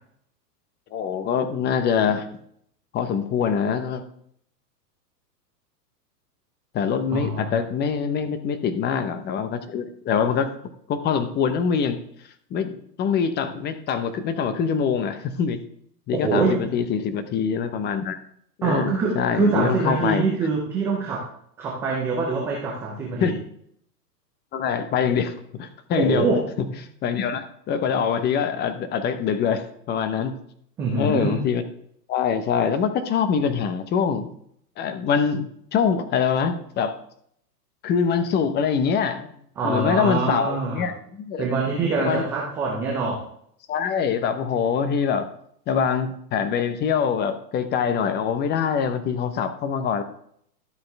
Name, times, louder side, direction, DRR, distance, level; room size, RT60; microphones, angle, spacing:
voice 1, 0.9-2.3 2.9-4.0 6.7-10.5 10.9-12.0 12.5-12.7 13.0-15.6 16.1-18.2 18.6-20.2 23.2-23.3 24.5-26.3 27.0-30.3 30.9-31.6 32.1-34.3 34.8-37.0 37.8-39.3 39.6-41.5 42.0-42.2 43.7-45.3 45.7-50.0, left 7 dB, 20° left, 10 dB, 0.8 m, -24 dB
voice 2, 7.1-7.6 16.1-16.6 18.6-21.3 21.6-23.3 26.0-26.4 30.8-31.4 39.6-40.9 41.4-43.3, right 4 dB, 5° right, -2 dB, 0.3 m, -24 dB
12.5 x 7.7 x 3.4 m, 0.68 s
hypercardioid pair, 120°, 49 cm